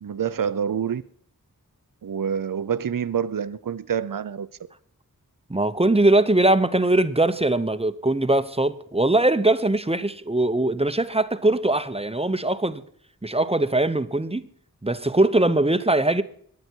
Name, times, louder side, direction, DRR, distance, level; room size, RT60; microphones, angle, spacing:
voice 1, 0.0-1.0 2.0-4.5, right 8 dB, 65° right, 0.7 m, -27 dB
voice 2, 5.5-12.8 13.2-14.5 14.8-16.2, right 2 dB, 15° right, 0.8 m, -21 dB
22.5 x 9.6 x 4.5 m
wide cardioid pair, 70°, 36 cm